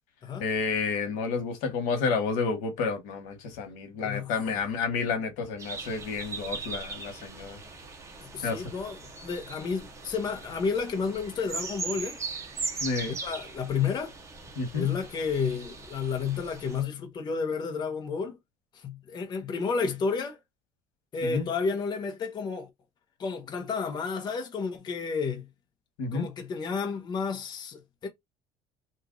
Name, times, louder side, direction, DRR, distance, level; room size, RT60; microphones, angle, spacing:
voice 1, 0.4-7.6 8.4-8.6 12.8-13.1 14.6-14.9 21.2-21.4 26.0-26.3, left 4 dB, 85° left, 1.2 m, -30 dB
voice 2, 4.0-4.6 8.2-12.2 13.2-14.2 14.7-18.4 18.7-20.4 21.1-22.7 23.2-25.4 26.1-28.1, left 5 dB, 35° left, 0.8 m, -31 dB
sound 1, 5.6-16.8, right 4 dB, 20° right, 0.9 m, -39 dB
2.9 x 2.5 x 3.7 m
cardioid pair, 135°, 13 cm